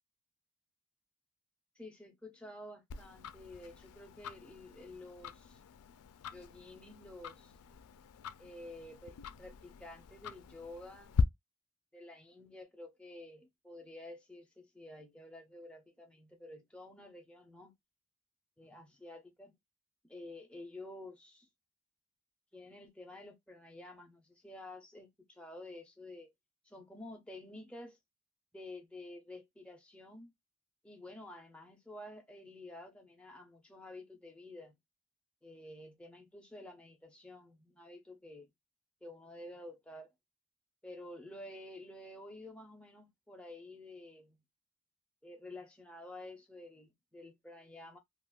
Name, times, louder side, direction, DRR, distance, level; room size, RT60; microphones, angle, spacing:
voice 1, 1.8-5.6 6.3-7.5 8.4-11.2 11.9-17.7 18.6-19.5 20.0-21.5 22.5-26.3 26.6-28.0 28.5-30.3 30.8-34.8 35.4-38.5 39.0-40.1 40.8-44.4 45.2-48.0, left 1 dB, 5° left, 0.5 m, -50 dB
Tick-tock, 2.9-11.2, left 8 dB, 85° left, 0.3 m, -41 dB
2.4 x 2.3 x 3.5 m
head